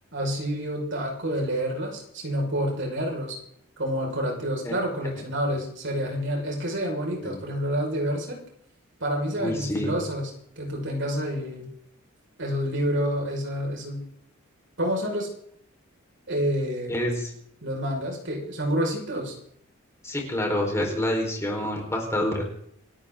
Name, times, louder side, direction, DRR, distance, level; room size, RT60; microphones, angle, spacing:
voice 1, 0.1-3.4 3.8-8.4 9.0-10.3 10.6-11.7 12.4-14.1 14.8-15.3 16.3-16.9 17.6-19.3, equal, 60° right, 1 dB, 5.4 m, -28 dB
voice 2, 9.4-10.0 16.9-17.3 20.0-22.5, left 1 dB, 15° left, 0 dB, 4.5 m, -27 dB
27.5 x 13.0 x 3.8 m, 0.68 s
head